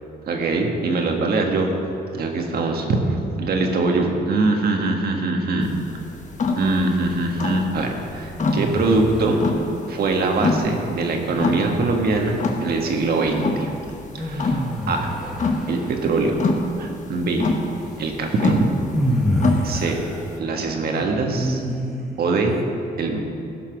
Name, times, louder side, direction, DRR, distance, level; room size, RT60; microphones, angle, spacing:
voice 1, 0.3-1.7 2.1-6.0 6.6-9.5 9.9-13.7 14.1-15.1 15.7-16.4 16.8-17.6 18.0-18.6 19.6-20.0 20.4-21.6 22.2-22.6 23.0-23.2, right 3 dB, 65° right, 2 dB, 1.5 m, -22 dB
sound 1, 5.6-20.4, left 3 dB, 45° left, 1.2 m, -27 dB
sound 2, 8.4-9.5 11.3-12.4 14.2-16.1 18.0-18.1 18.9-22.2, equal, ahead, 1.4 m, -27 dB
15.5 x 5.9 x 5.9 m, 2.6 s
cardioid pair, 120°, 17 cm